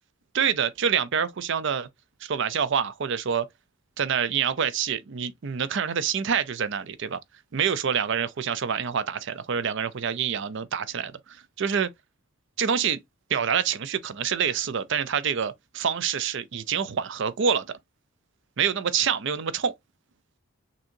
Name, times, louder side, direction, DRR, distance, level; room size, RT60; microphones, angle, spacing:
voice 1, 0.3-1.9 2.2-3.5 4.0-7.2 7.5-11.9 12.6-13.0 13.3-17.8 18.6-19.7, right 7 dB, 60° right, 0.5 m, -26 dB
6.1 x 2.8 x 2.5 m
head